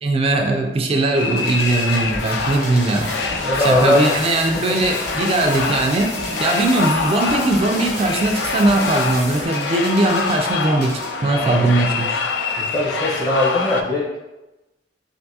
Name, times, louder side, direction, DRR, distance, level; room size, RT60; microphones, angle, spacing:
voice 1, 0.0-3.4 3.6-12.2, right 2 dB, 35° right, 3 dB, 0.3 m, -20 dB
sound 1, 1.1-13.8, left 4 dB, 85° left, 0.3 m, -25 dB
sound 2, 1.4-11.1, left 1 dB, 60° left, 1.0 m, -36 dB
sound 3, 1.9-9.5, equal, 40° left, 1.2 m, -33 dB
voice 2, 3.4-4.2 4.6-4.8 11.3-11.8 12.6-14.1, left 1 dB, 25° left, -4 dB, 0.8 m, -21 dB
3.4 x 2.6 x 2.7 m, 1.0 s
head